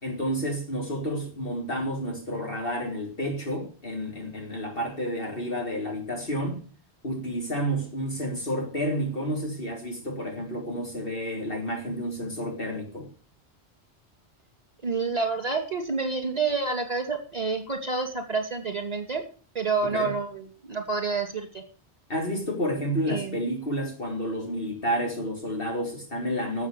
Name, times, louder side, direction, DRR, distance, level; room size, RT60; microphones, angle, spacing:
voice 1, 0.0-6.6 7.0-13.1 19.9-20.1 22.1-26.7, equal, 55° left, 3.9 m, -30 dB
voice 2, 14.8-19.2 19.5-21.6 23.1-23.4, right 4 dB, 35° right, 2.7 m, -28 dB
12.5 x 7.9 x 8.4 m
omnidirectional pair, 1.1 m